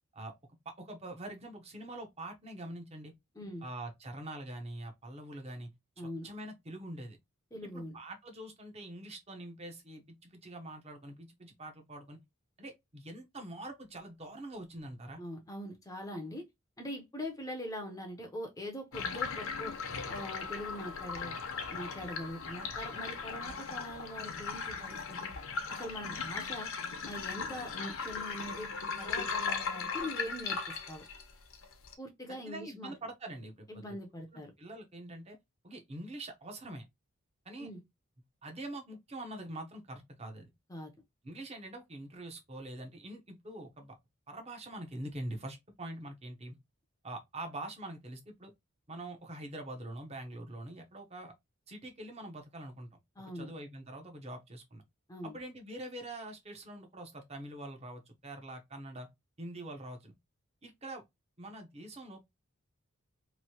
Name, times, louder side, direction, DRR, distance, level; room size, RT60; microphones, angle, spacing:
voice 1, 0.6-3.1 3.6-5.7 6.0-7.2 7.6-12.2 12.6-15.2 32.5-34.0 34.3-35.4 35.6-36.8 37.4-37.7 38.4-40.5 41.2-44.0 44.3-46.6 47.0-48.5 48.9-51.3 51.7-52.9 53.3-54.8 55.2-59.1 59.4-60.1 60.6-61.0 61.4-62.2, right 1 dB, 30° right, 0.8 m, -44 dB
voice 2, 6.0-6.3 7.5-8.0 15.2-16.4 16.8-19.8 20.1-21.4 21.7-25.3 25.7-26.7 27.1-28.7 29.0-31.1 32.0-32.9 33.7-34.5 37.6-37.8 40.7-40.9 53.2-53.5 55.1-55.4, left 1 dB, 15° left, 0.6 m, -42 dB
sound 1, 18.9-31.9, left 5 dB, 65° left, 0.7 m, -38 dB
3.0 x 2.6 x 2.8 m
head